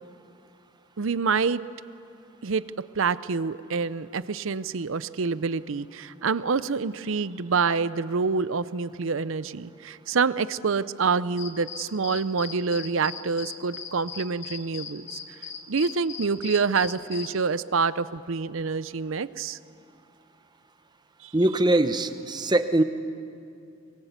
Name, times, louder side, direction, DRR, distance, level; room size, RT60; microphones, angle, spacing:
voice 1, 1.0-1.6 2.4-15.2 15.7-19.6 21.2-21.3, right 5 dB, 65° right, 16 dB, 0.6 m, -27 dB
sound 1, 11.4-17.3, left 7 dB, 55° left, 1.7 m, -39 dB
voice 2, 21.3-22.8, right 1 dB, 20° right, 10 dB, 0.8 m, -22 dB
23.0 x 22.5 x 8.2 m, 2.6 s
head